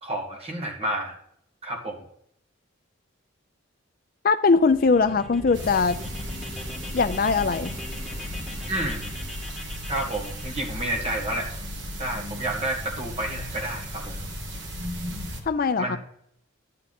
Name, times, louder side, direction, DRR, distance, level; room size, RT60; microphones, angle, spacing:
voice 1, 0.0-1.2 1.6-2.0 8.7-9.1 9.9-11.5 12.0-14.3 15.8-16.0, right 1 dB, 30° right, 1 dB, 2.2 m, -30 dB
voice 2, 4.2-6.0 6.9-7.7 15.5-16.0, left 4 dB, 45° left, 12 dB, 0.4 m, -21 dB
sound 1, 4.5-10.6, left 2 dB, ahead, 3.0 m, -39 dB
sound 2, 5.5-15.4, equal, 60° right, 1.9 m, -35 dB
11.0 x 8.3 x 4.2 m, 0.70 s
head